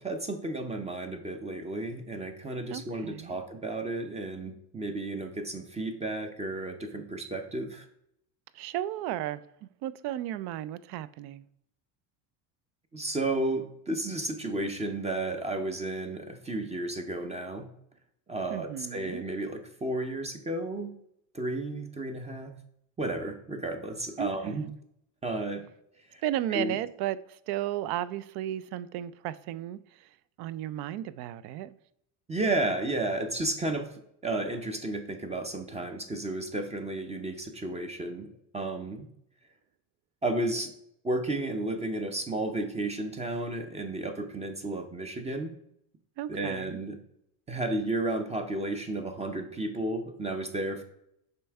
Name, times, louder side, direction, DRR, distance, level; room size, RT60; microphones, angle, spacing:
voice 1, 0.0-7.9 12.9-17.7 18.3-20.9 21.3-22.5 23.0-24.7 25.2-25.7 26.1-26.2 26.5-26.8 32.3-33.9 34.2-38.3 38.5-39.1 40.2-40.7 41.0-45.5 46.3-47.0 47.5-50.8, right 2 dB, 15° right, 0.5 m, -32 dB
voice 2, 2.7-3.4 8.5-11.4 18.5-19.2 24.2-24.7 26.2-30.1 30.4-31.8 46.2-46.8, right 13 dB, 60° right, 0.5 m, -34 dB
6.8 x 4.4 x 3.4 m
cardioid pair, 120°, 43 cm